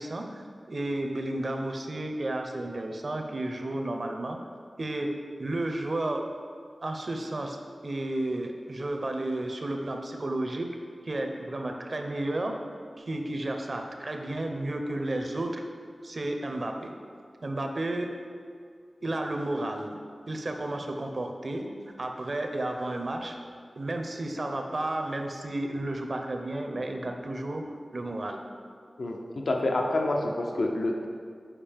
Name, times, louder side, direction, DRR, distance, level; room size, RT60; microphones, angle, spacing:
voice 1, 0.0-4.4 4.8-5.1 5.4-6.2 6.8-10.7 11.0-12.5 13.0-15.6 16.0-16.9 17.4-18.1 19.0-20.0 20.3-23.4 23.8-28.4, right 1 dB, 55° right, 3 dB, 0.6 m, -32 dB
voice 2, 29.0-31.1, left 2 dB, 80° left, 2 dB, 0.6 m, -28 dB
7.3 x 4.9 x 3.5 m, 2.1 s
wide cardioid pair, 85°, 0 cm